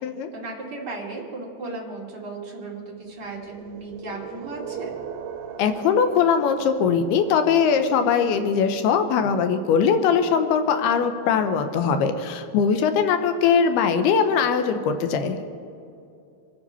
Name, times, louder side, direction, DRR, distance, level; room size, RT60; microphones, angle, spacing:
voice 1, 0.3-4.9, right 3 dB, 30° right, -3 dB, 2.4 m, -35 dB
sound 1, 3.2-8.2, right 7 dB, 80° right, 3.2 m, -39 dB
voice 2, 5.6-15.4, left 6 dB, 80° left, 8 dB, 2.8 m, -21 dB
25.5 x 9.7 x 5.6 m, 2.6 s
omnidirectional pair, 4.6 m